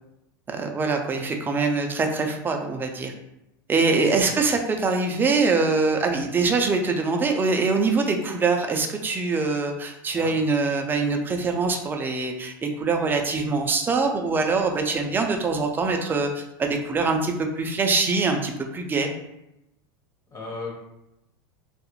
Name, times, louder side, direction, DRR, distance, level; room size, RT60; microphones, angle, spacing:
voice 1, 0.5-3.1 3.7-19.1, right 4 dB, 15° right, 3 dB, 0.3 m, -24 dB
voice 2, 4.1-4.4 10.1-10.3 20.3-20.7, left 3 dB, 25° left, -2 dB, 0.8 m, -36 dB
2.3 x 2.0 x 2.9 m, 0.87 s
supercardioid pair, 115°, 12 cm